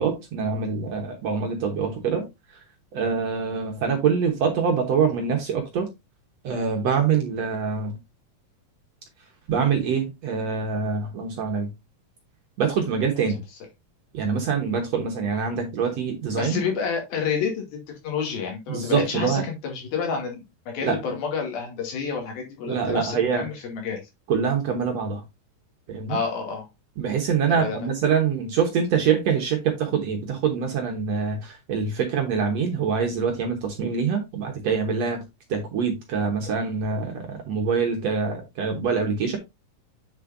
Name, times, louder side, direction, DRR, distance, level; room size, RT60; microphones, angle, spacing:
voice 1, 0.0-2.3 2.9-5.9 6.4-8.0 9.5-11.7 12.6-13.4 14.1-16.6 18.7-19.4 20.8-21.0 22.7-23.5 24.3-25.2 25.9-26.2 27.0-35.2 35.5-39.4, right 6 dB, 65° right, 1.8 m, -25 dB
voice 2, 16.4-17.6 18.0-24.0 26.1-26.7 27.5-27.9, left 5 dB, 80° left, 4.2 m, -29 dB
8.0 x 6.5 x 2.6 m
omnidirectional pair, 4.2 m